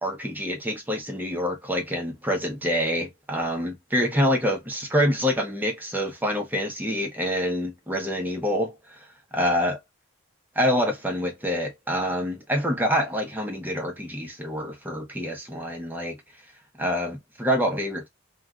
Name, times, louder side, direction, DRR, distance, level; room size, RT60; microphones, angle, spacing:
voice 1, 0.0-9.0 9.3-9.8 10.6-16.2 16.8-18.1, equal, 10° right, 0.8 m, -26 dB
3.1 x 2.4 x 2.4 m
head